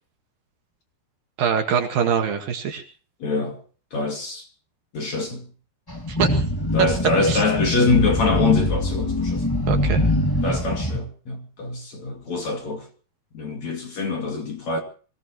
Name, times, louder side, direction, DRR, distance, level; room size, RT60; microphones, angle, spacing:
voice 1, 1.4-2.8 6.1-6.4 7.3-7.4 9.7-10.0, right 7 dB, 60° right, 3.3 m, -23 dB
voice 2, 3.2-3.6 3.9-4.5 4.9-5.4 6.7-9.5 10.4-12.9 13.3-14.8, left 3 dB, 45° left, 3.3 m, -24 dB
sound 1, 5.9-11.0, left 1 dB, 15° left, 0.7 m, -23 dB
25.5 x 18.0 x 3.1 m
omnidirectional pair, 5.1 m